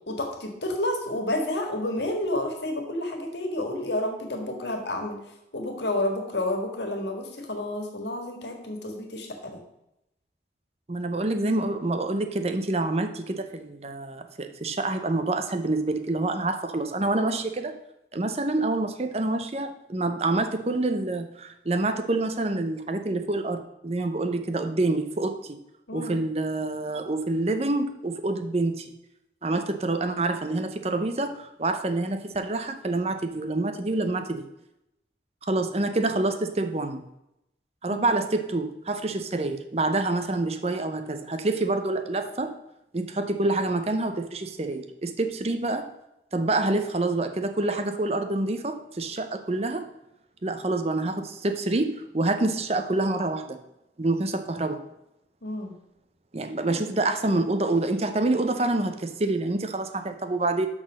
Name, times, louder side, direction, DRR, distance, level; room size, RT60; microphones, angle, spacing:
voice 1, 0.1-5.2 5.5-9.6 25.9-26.2 37.9-38.1 55.4-55.7 56.6-56.8, left 1 dB, 80° left, 3 dB, 1.8 m, -30 dB
voice 2, 10.9-17.8 18.1-25.6 25.9-28.9 29.4-34.5 35.4-37.0 37.8-42.5 42.9-45.9 46.3-49.9 50.4-53.6 54.0-54.8 56.3-60.7, right 2 dB, 35° right, 7 dB, 0.7 m, -27 dB
6.1 x 6.1 x 6.3 m, 0.86 s
head